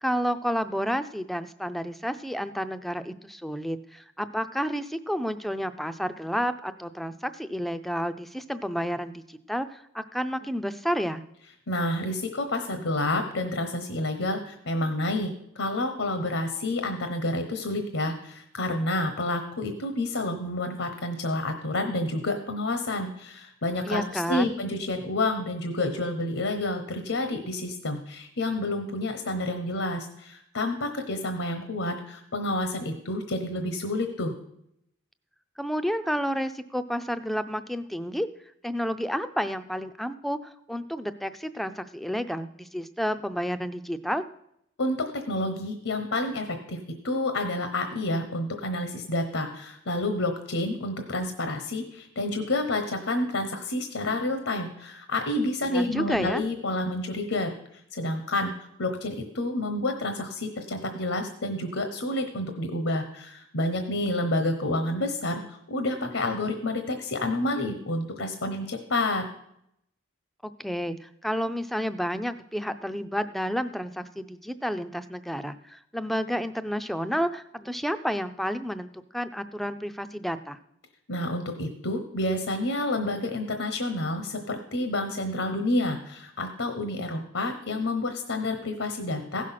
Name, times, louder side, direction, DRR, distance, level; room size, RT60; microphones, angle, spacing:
voice 1, 0.0-11.2 23.8-24.6 35.6-38.3 38.6-44.2 55.6-56.4 70.4-80.6, equal, ahead, 11 dB, 0.4 m, -30 dB
voice 2, 11.7-34.3 44.8-46.8 47.0-58.5 58.8-69.3 81.1-89.5, left 1 dB, 80° left, 6 dB, 1.1 m, -29 dB
16.0 x 6.3 x 5.8 m, 0.77 s
head